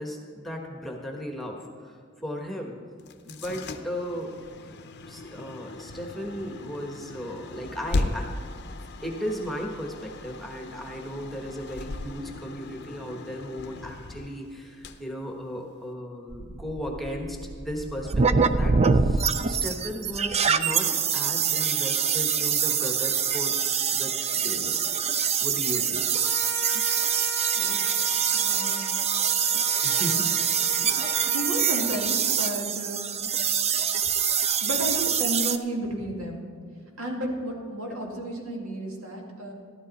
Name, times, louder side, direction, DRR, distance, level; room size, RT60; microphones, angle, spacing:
voice 1, 0.0-2.8 3.2-4.3 4.6-4.8 5.1-8.4 9.0-23.6 23.9-24.8 25.4-26.0 29.6-30.4 30.7-31.1, equal, ahead, 0 dB, 1.3 m, -36 dB
sound 1, 3.0-15.9, left 2 dB, 50° left, 0.7 m, -37 dB
sound 2, 16.3-35.6, right 7 dB, 30° right, 0.4 m, -25 dB
Trumpet, 26.1-32.7, left 2 dB, 15° left, 0.9 m, -40 dB
voice 2, 27.6-27.9 28.3-28.9 31.3-33.1 34.6-36.4 37.0-39.5, right 1 dB, 75° right, 0 dB, 2.2 m, -32 dB
13.0 x 12.0 x 4.1 m, 2.1 s
head